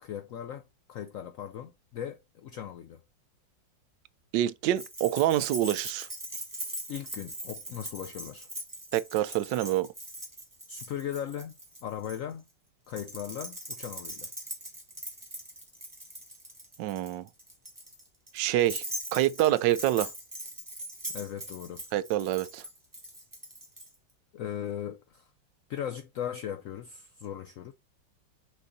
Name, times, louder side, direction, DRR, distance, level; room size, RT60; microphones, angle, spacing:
voice 1, 0.0-3.0 6.9-8.5 10.7-12.5 12.9-14.3 21.1-21.8 24.3-25.3 25.7-27.7, left 9 dB, 75° left, 0.7 m, -38 dB
voice 2, 4.3-6.1 8.9-9.9 16.8-17.3 18.3-18.8 19.1-20.1 21.9-22.6, right 13 dB, 80° right, 1.2 m, -26 dB
Keys jangling, 4.8-12.2 12.9-23.9, right 1 dB, 10° right, 1.5 m, -41 dB
6.3 x 4.0 x 3.9 m
omnidirectional pair, 2.0 m